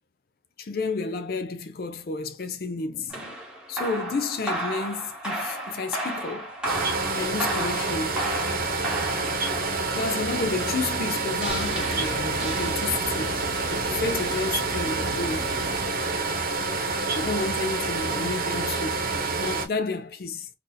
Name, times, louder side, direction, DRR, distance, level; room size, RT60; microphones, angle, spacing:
voice 1, 0.6-3.4 3.7-6.5 7.1-8.2 10.0-13.4 13.7-15.6 17.1-19.1 19.4-20.5, left 3 dB, 55° left, 0.4 m, -31 dB
sound 1, 3.1-13.3, right 1 dB, 5° right, 1.0 m, -34 dB
sound 2, 6.6-19.7, right 3 dB, 55° right, 0.8 m, -28 dB
sound 3, 11.5-15.9, right 2 dB, 25° right, 0.4 m, -38 dB
2.7 x 2.6 x 3.8 m
head